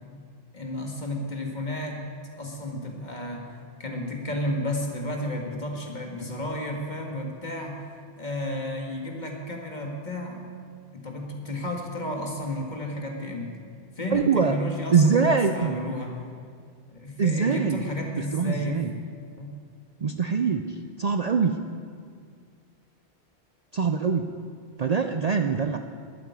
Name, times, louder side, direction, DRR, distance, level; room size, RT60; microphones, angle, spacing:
voice 1, 0.5-2.1 2.4-3.4 3.8-7.9 8.2-10.5 10.9-13.5 14.0-16.2 16.9-18.8 19.4-19.5, left 1 dB, 45° left, 1 dB, 2.0 m, -32 dB
voice 2, 14.1-14.6 14.9-15.8 17.2-17.8 18.3-18.9 20.0-21.6 23.7-24.3 24.8-25.8, right 5 dB, 45° right, 7 dB, 0.6 m, -23 dB
12.0 x 8.9 x 9.7 m, 2.1 s
omnidirectional pair, 1.1 m